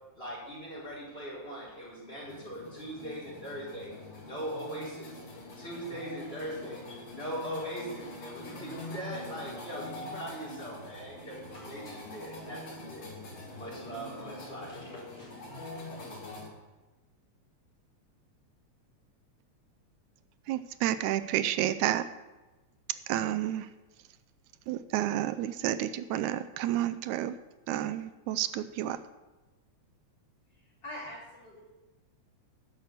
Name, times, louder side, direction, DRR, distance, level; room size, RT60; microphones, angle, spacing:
voice 1, 0.2-3.9 4.2-5.1 5.6-13.1 13.5-15.3, equal, 20° left, -7 dB, 4.6 m, -40 dB
sound 1, 2.2-16.5, left 1 dB, 70° left, 4.1 m, -44 dB
voice 2, 20.5-22.1 23.1-23.7 24.7-27.4 27.7-29.0, right 12 dB, 85° right, 12 dB, 2.0 m, -30 dB
voice 3, 30.5-31.6, left 1 dB, 35° left, -6 dB, 4.3 m, -44 dB
10.5 x 6.6 x 8.0 m, 1.2 s
omnidirectional pair, 3.3 m